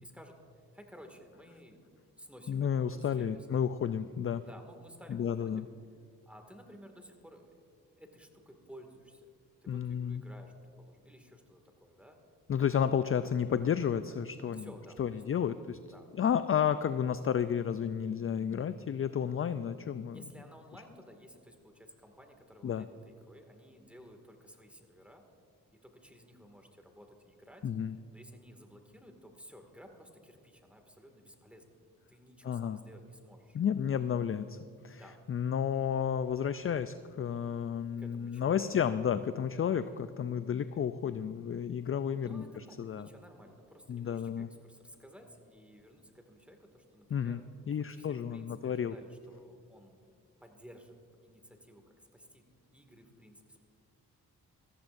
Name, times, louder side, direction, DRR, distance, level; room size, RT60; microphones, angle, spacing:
voice 1, 0.0-1.8 2.2-3.6 4.4-5.7 6.3-7.5 8.0-9.3 9.6-12.2 14.5-15.5 15.9-16.1 20.1-25.2 25.8-27.6 28.1-31.8 32.1-33.6 34.9-35.2 38.0-39.0 41.8-47.4 47.7-50.0 50.4-51.0 51.2-52.4 52.7-53.6, equal, 5° right, 4 dB, 2.1 m, -55 dB
voice 2, 2.5-4.4 5.1-5.7 9.7-10.2 12.5-14.7 15.0-15.8 16.2-20.2 22.6-22.9 27.6-27.9 32.4-32.8 33.5-35.0 35.3-43.1 43.9-44.5 47.1-47.4 47.7-48.9, left 8 dB, 35° left, 12 dB, 0.4 m, -32 dB
18.0 x 14.0 x 2.6 m, 2.3 s
supercardioid pair, 45°, 40 cm